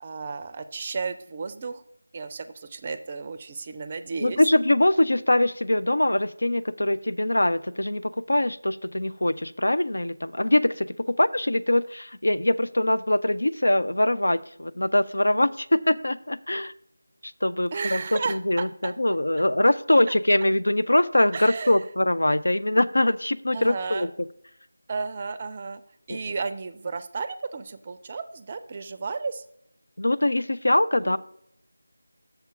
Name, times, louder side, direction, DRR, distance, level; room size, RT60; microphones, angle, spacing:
voice 1, 0.0-1.8 2.1-4.4 17.7-18.9 21.3-21.8 23.5-24.1 24.9-25.8 26.1-29.4 31.0-31.2, right 4 dB, 25° right, 10 dB, 0.4 m, -33 dB
voice 2, 4.2-16.7 17.4-18.0 18.3-24.1 26.1-26.2 30.0-31.2, left 1 dB, 75° left, 13 dB, 0.4 m, -23 dB
6.8 x 5.7 x 4.6 m, 0.71 s
figure-of-eight pair, 165°, 0 cm